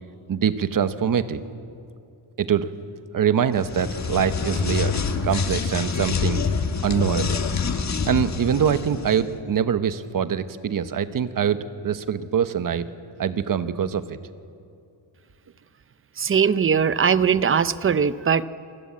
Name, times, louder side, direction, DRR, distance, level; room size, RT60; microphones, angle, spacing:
voice 1, 0.3-1.4 2.4-2.7 3.1-4.9 5.2-6.4 6.8-7.4 8.1-12.9 13.2-14.2, right 8 dB, 45° right, 11 dB, 1.0 m, -24 dB
sound 1, 3.5-9.2, left 5 dB, 35° left, 1.4 m, -26 dB
voice 2, 16.2-18.4, right 7 dB, 30° right, 15 dB, 0.5 m, -20 dB
28.0 x 20.5 x 8.6 m, 2.5 s
wide cardioid pair, 180°, 46 cm